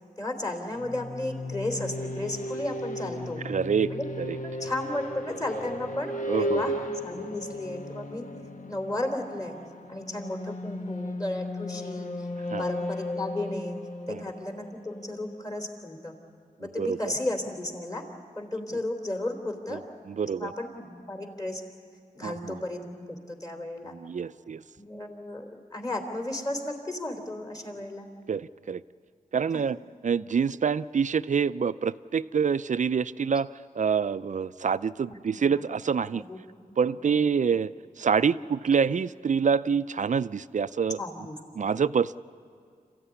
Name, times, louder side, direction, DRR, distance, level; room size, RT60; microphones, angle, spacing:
voice 1, 0.2-3.4 3.9-4.1 4.4-8.3 8.7-9.6 9.9-12.1 12.6-13.8 14.1-16.1 16.6-18.0 18.4-19.8 20.4-21.6 22.2-23.9 24.8-28.1 29.5-29.6 35.3-35.5 36.1-36.4 36.7-37.1 41.0-41.6, left 1 dB, 25° left, 4 dB, 3.3 m, -34 dB
sound 1, 0.7-15.4, left 1 dB, 60° left, 1.2 m, -35 dB
voice 2, 3.4-3.9 4.2-4.4 6.3-6.6 12.5-12.6 14.1-14.2 16.8-17.0 19.7-19.8 20.1-20.5 22.2-22.6 23.9-24.6 28.3-28.8 29.3-29.8 30.0-33.5 33.8-36.2 36.8-37.7 38.0-41.0 41.6-42.2, right 6 dB, 55° right, 15 dB, 0.5 m, -26 dB
26.5 x 15.0 x 9.9 m, 2.2 s
wide cardioid pair, 70°, 15 cm